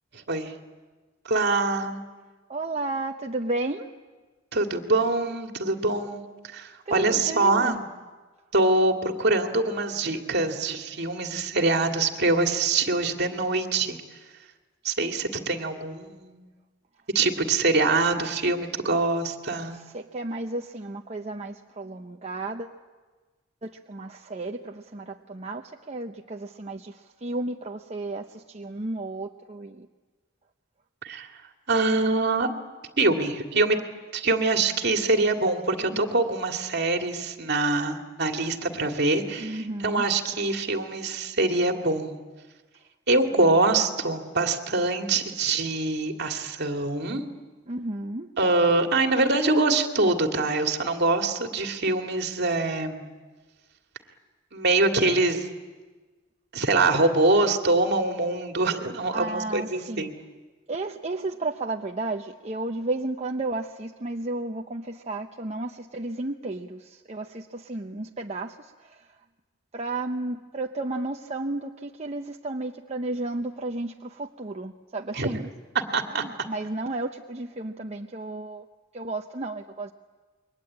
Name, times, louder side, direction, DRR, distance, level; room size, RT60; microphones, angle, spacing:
voice 1, 0.1-0.5 1.2-2.0 4.5-6.2 6.5-7.9 8.5-14.0 14.8-16.4 17.1-19.8 31.0-31.3 31.7-32.5 33.0-33.8 34.1-42.2 43.1-47.2 48.4-53.1 54.5-55.5 56.5-60.1 75.1-75.3 75.9-76.2, right 2 dB, 55° right, 4 dB, 2.3 m, -24 dB
voice 2, 2.5-3.9 6.9-7.7 19.9-22.7 23.6-26.9 27.2-29.9 35.8-36.0 39.4-40.0 47.7-48.3 59.1-60.1 60.7-68.6 69.7-75.5 76.2-78.6 78.9-79.9, right 2 dB, 35° right, 3 dB, 0.8 m, -33 dB
28.5 x 23.0 x 8.7 m, 1.3 s
head